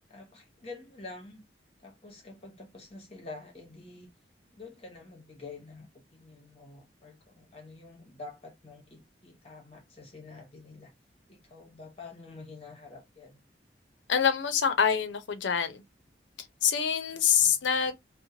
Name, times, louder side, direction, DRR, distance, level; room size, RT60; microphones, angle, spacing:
voice 1, 0.1-1.4 1.8-4.1 4.5-10.9 11.3-13.4 17.1-17.6, left 3 dB, 35° left, 0.8 m, -48 dB
voice 2, 14.1-15.8 16.6-17.9, left 7 dB, 85° left, 0.6 m, -25 dB
2.9 x 2.1 x 2.7 m
head